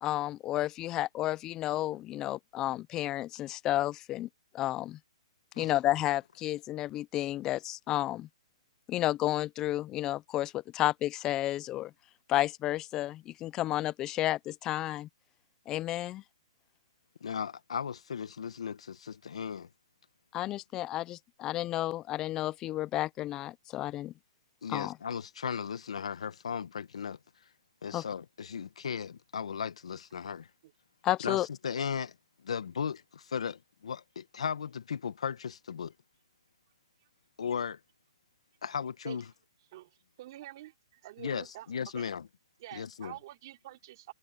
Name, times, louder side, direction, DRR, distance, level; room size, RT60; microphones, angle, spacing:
voice 1, 0.0-4.3 4.5-5.0 5.6-8.3 8.9-11.9 12.3-15.1 15.7-16.2 20.3-24.1 24.7-25.0 27.9-28.0 31.0-31.5, left 14 dB, 15° left, 0.4 m, -31 dB
voice 2, 17.2-19.7 24.6-27.2 27.8-30.5 31.2-32.1 32.4-35.9 37.4-37.8 38.6-39.3 41.2-42.3 42.7-43.2, left 7 dB, 75° left, 1.4 m, -36 dB
voice 3, 40.2-40.7 41.0-41.7 42.0-42.1 42.6-44.1, right 15 dB, 40° right, 3.4 m, -46 dB
hypercardioid pair, 160°, 3 cm